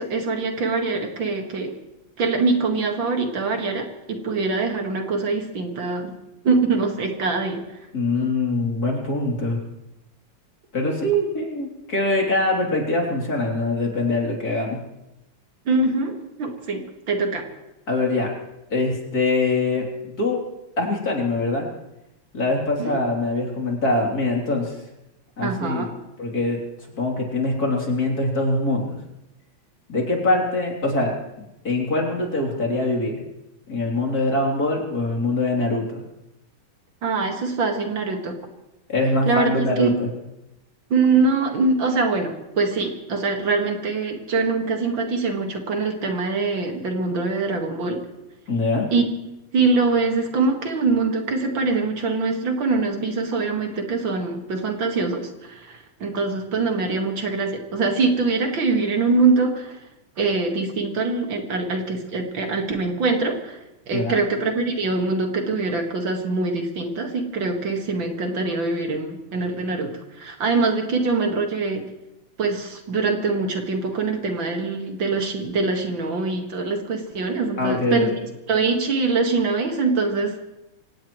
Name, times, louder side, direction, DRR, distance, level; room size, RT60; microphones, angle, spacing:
voice 1, 0.0-1.7 2.2-6.1 6.4-7.6 10.8-10.9 15.7-17.5 22.8-23.0 25.4-25.9 37.0-38.4 39.3-39.9 40.9-48.0 48.9-49.0 49.5-59.8 60.2-63.6 63.9-71.8 72.4-78.1 78.5-80.5, right 3 dB, 70° right, 3 dB, 2.6 m, -23 dB
voice 2, 7.9-9.6 10.7-14.8 17.9-18.3 18.7-19.9 20.2-20.4 20.8-21.7 22.3-24.8 25.4-25.9 26.2-26.6 27.0-29.0 29.9-31.1 31.6-33.1 33.7-36.0 38.9-40.1 48.5-48.9 63.9-64.2 77.6-78.1, left 2 dB, 50° left, -1 dB, 3.7 m, -23 dB
25.5 x 17.5 x 3.1 m, 0.92 s
omnidirectional pair, 2.2 m